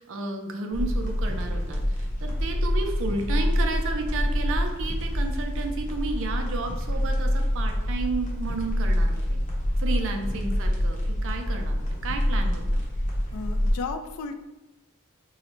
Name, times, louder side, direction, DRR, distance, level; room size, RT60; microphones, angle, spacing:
voice 1, 0.0-1.8 2.2-9.4 9.8-12.8, right 3 dB, 65° right, 4 dB, 0.4 m, -32 dB
sound 1, 0.7-13.7, equal, 35° left, 0.7 m, -26 dB
voice 2, 10.0-10.4 13.3-14.4, left 4 dB, 80° left, 7 dB, 0.3 m, -35 dB
3.8 x 2.0 x 2.9 m, 1.0 s
head